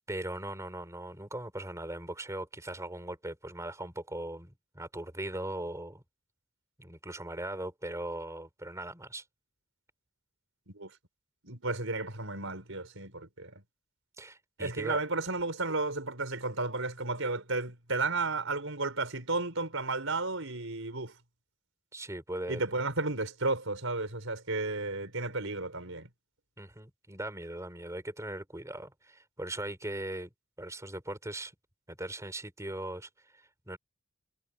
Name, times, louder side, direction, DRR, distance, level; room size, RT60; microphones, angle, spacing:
voice 1, 0.1-6.0 6.8-9.2 14.2-15.0 21.9-22.6 26.6-30.3 30.6-31.5 31.9-33.8, right 1 dB, 15° right, 4.1 m, -39 dB
voice 2, 11.4-13.5 14.6-21.1 22.5-26.1, right 3 dB, 65° right, 6.0 m, -33 dB
head